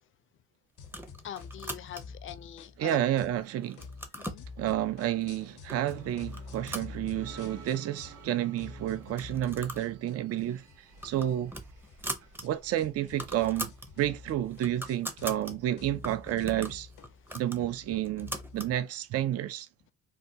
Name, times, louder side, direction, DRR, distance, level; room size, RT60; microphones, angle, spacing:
sound 1, 0.8-3.4 3.7-8.3 8.6-18.8, left 5 dB, 85° left, 0.8 m, -48 dB
sound 2, 0.8-2.3 2.8-3.3 3.6-4.5 5.2-5.3 5.7-6.0 6.3-7.5 7.9-8.0 8.2-8.3 9.0-9.9 10.2-10.4 10.8-12.5 12.8-12.9 13.1-13.9 14.3-15.5 16.0-18.7, right 1 dB, 5° right, 0.6 m, -41 dB
voice 1, 1.2-3.0 4.2-4.5, left 10 dB, 40° left, 0.4 m, -43 dB
voice 2, 2.8-3.8 4.6-11.5 12.4-16.9 17.3-19.7, right 12 dB, 55° right, 0.4 m, -30 dB
sound 3, 5.7-18.5, right 5 dB, 75° right, 1.3 m, -56 dB
3.4 x 2.2 x 2.7 m
cardioid pair, 90°, 30 cm